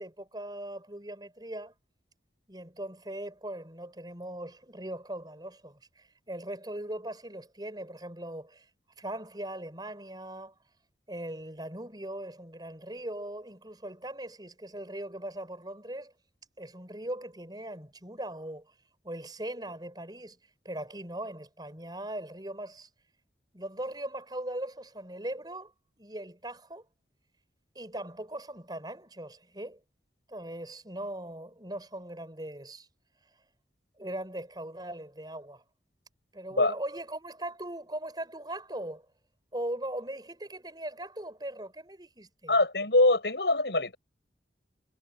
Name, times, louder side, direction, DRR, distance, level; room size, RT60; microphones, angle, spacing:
voice 1, 0.0-1.7 2.5-8.6 9.0-10.6 11.1-16.1 16.6-18.7 19.0-20.4 20.6-22.9 23.5-25.7 26.0-26.8 27.7-29.8 30.3-32.9 34.0-35.6 36.3-39.0 39.5-42.6, right 1 dB, 25° right, 4.9 m, -39 dB
voice 2, 42.5-44.0, left 2 dB, 75° left, 7.0 m, -24 dB
head